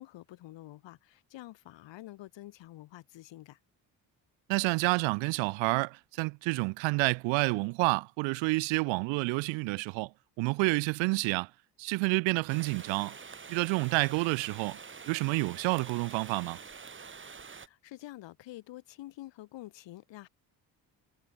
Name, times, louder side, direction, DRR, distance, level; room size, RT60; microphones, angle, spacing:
voice 1, 0.0-3.6 17.6-20.3, left 16 dB, 80° left, 3.7 m, -48 dB
voice 2, 4.5-10.1 10.4-11.5 11.8-13.1 13.5-14.8 15.1-16.6, right 28 dB, 90° right, 0.9 m, -29 dB
sound 1, 12.5-17.7, right 5 dB, 25° right, 1.3 m, -47 dB
supercardioid pair, 65°, 44 cm